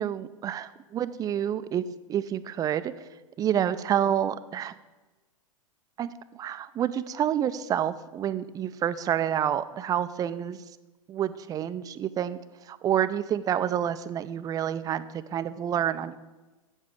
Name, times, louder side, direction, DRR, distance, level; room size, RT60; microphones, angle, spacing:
voice 1, 0.0-1.8 2.1-2.9 3.4-4.7 6.0-10.6 11.1-12.4 12.7-16.2, right 10 dB, 20° right, 14 dB, 0.4 m, -28 dB
7.6 x 7.2 x 8.1 m, 1.2 s
figure-of-eight pair, 100°, 18 cm